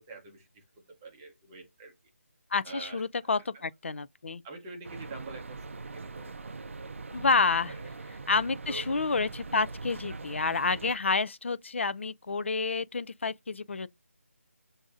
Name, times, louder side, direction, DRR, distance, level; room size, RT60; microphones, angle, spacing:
voice 1, 0.0-1.9 2.6-3.0 3.4-3.6 4.4-7.0 7.2-7.3 7.7-7.9 8.7-9.0, right 3 dB, 10° right, 0.7 m, -46 dB
voice 2, 2.5-4.4 7.1-7.7 8.3-13.9, left 4 dB, 55° left, 0.3 m, -29 dB
sound 1, 4.8-10.9, right 3 dB, 55° right, 0.4 m, -42 dB
6.2 x 2.6 x 2.4 m
figure-of-eight pair, 170°, 8 cm